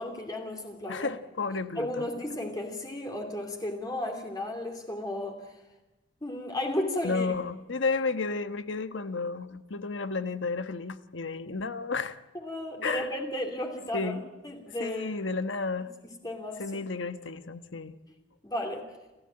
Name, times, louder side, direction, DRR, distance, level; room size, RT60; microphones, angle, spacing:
voice 1, 0.0-1.1 1.7-5.4 6.2-7.3 12.3-15.1 16.2-16.6 18.4-18.9, left 1 dB, 20° left, 1 dB, 2.8 m, -34 dB
voice 2, 0.9-2.1 7.0-12.2 12.8-13.1 13.9-14.2 14.8-15.9 16.6-17.9, left 4 dB, 85° left, 10 dB, 1.2 m, -32 dB
28.5 x 14.5 x 8.8 m, 1.1 s
head